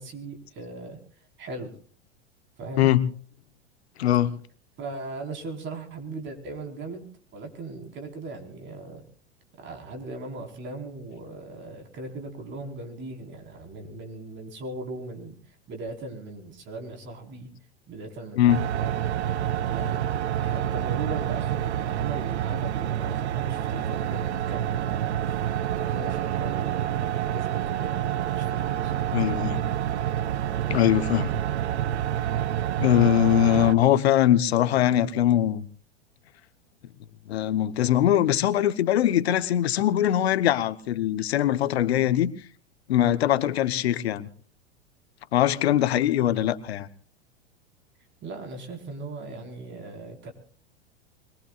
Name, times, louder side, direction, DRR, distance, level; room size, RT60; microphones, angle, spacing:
voice 1, 0.0-1.8 2.6-2.9 4.8-7.1 7.3-9.0 9.6-17.5 17.9-18.9 19.6-20.0 20.3-25.4 25.7-29.0 48.2-50.3, right 2 dB, 35° right, 3 dB, 4.5 m, -39 dB
voice 2, 4.0-4.4 18.4-18.6 29.1-29.6 30.7-31.3 32.8-35.6 37.3-42.3 42.9-44.3 45.3-46.9, left 12 dB, 70° left, 13 dB, 1.1 m, -22 dB
sound 1, 18.5-33.7, right 11 dB, 80° right, 0.7 m, -28 dB
25.0 x 21.5 x 2.4 m, 0.43 s
hypercardioid pair, 95°, 33 cm